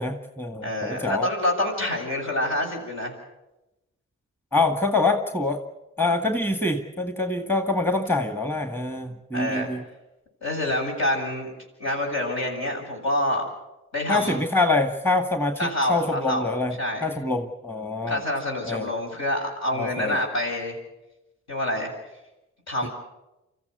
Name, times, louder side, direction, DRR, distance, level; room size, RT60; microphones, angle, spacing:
voice 1, 0.0-1.3 4.5-5.6 6.0-9.8 14.1-16.7 17.0-18.2 18.6-18.9 19.8-20.2, left 2 dB, 5° left, 6 dB, 2.1 m, -25 dB
voice 2, 0.6-3.1 9.3-9.7 10.4-11.5 11.8-13.4 13.9-14.4 15.6-16.5 16.8-17.0 18.0-20.8 21.5-21.9 22.7-22.9, left 1 dB, 60° left, 0 dB, 7.5 m, -27 dB
26.0 x 14.5 x 8.2 m, 0.96 s
supercardioid pair, 45°, 31 cm